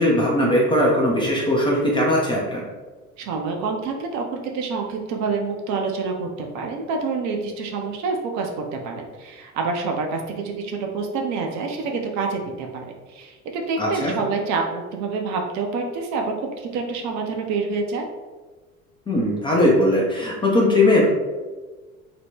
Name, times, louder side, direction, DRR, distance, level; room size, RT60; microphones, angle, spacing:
voice 1, 0.0-2.6 13.8-14.1 19.1-21.0, left 1 dB, 10° left, -4 dB, 0.4 m, -19 dB
voice 2, 3.2-18.0, right 4 dB, 45° right, 2 dB, 0.5 m, -27 dB
2.8 x 2.1 x 3.5 m, 1.3 s
figure-of-eight pair, 65°, 43 cm